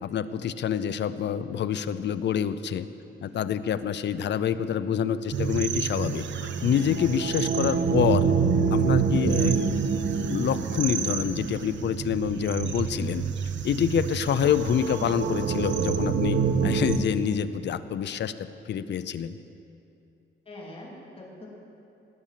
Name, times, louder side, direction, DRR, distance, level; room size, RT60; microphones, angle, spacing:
voice 1, 0.0-2.9 3.2-6.2 6.6-8.3 8.7-13.2 13.6-19.4, left 8 dB, 60° left, 13 dB, 0.6 m, -27 dB
voice 2, 3.0-3.4 20.4-21.5, left 1 dB, 25° left, -4 dB, 3.2 m, -44 dB
sound 1, 5.3-17.0, right 6 dB, 65° right, 1.0 m, -27 dB
18.5 x 8.8 x 7.5 m, 2.7 s
cardioid pair, 140°, 21 cm